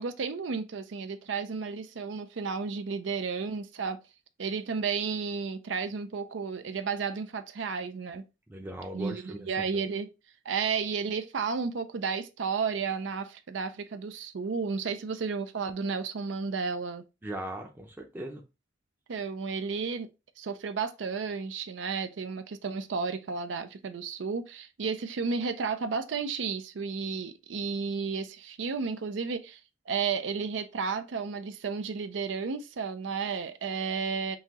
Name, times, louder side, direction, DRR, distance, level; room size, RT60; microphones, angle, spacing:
voice 1, 0.0-4.0 4.4-8.2 8.9-10.1 10.5-17.0 19.1-20.1 20.4-29.6 29.9-34.4, right 5 dB, 80° right, 0.5 m, -32 dB
voice 2, 8.5-9.8 17.2-18.4, right 1 dB, 10° right, 0.6 m, -39 dB
5.5 x 2.8 x 2.9 m
head